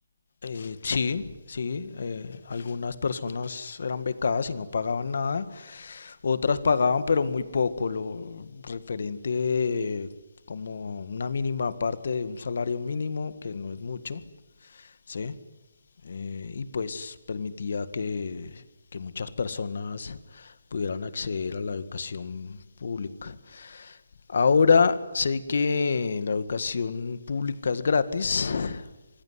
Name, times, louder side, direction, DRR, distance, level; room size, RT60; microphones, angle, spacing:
voice 1, 0.4-10.1 10.5-14.2 14.6-15.4 16.0-18.6 18.9-24.0 24.3-28.9, left 5 dB, 60° left, 1.9 m, -28 dB
26.0 x 21.0 x 9.7 m
hypercardioid pair, 170°, 0 cm